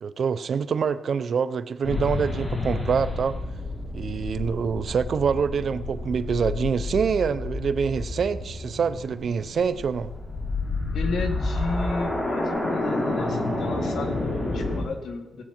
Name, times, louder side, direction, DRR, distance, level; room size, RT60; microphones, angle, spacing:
voice 1, 0.0-3.4 3.9-10.1, right 6 dB, 60° right, 13 dB, 0.6 m, -25 dB
sound 1, 1.8-14.8, left 2 dB, 30° left, 4.0 m, -30 dB
voice 2, 10.9-15.4, left 3 dB, 75° left, 4 dB, 2.0 m, -32 dB
17.0 x 8.3 x 4.4 m, 1.0 s
cardioid pair, 105°, 0 cm